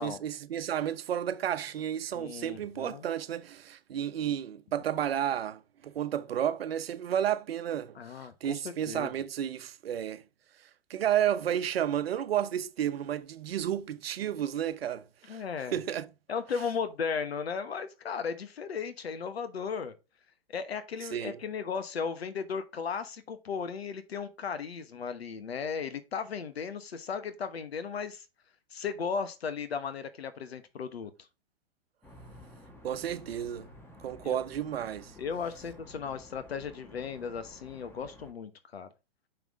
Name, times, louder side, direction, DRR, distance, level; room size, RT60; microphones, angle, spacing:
voice 1, 0.0-8.0 8.4-10.2 10.9-15.4 15.7-16.1 21.1-21.4 32.8-33.7 34.0-35.1, right 10 dB, 75° right, 0.9 m, -32 dB
voice 2, 2.1-3.0 7.9-9.1 15.3-15.8 16.3-19.9 20.5-28.2 28.7-31.1 34.2-34.4 35.2-38.9, left 6 dB, 85° left, 1.1 m, -36 dB
sound 1, 32.0-38.3, left 1 dB, 5° left, 1.3 m, -52 dB
5.7 x 5.5 x 3.5 m
hypercardioid pair, 130°, 30 cm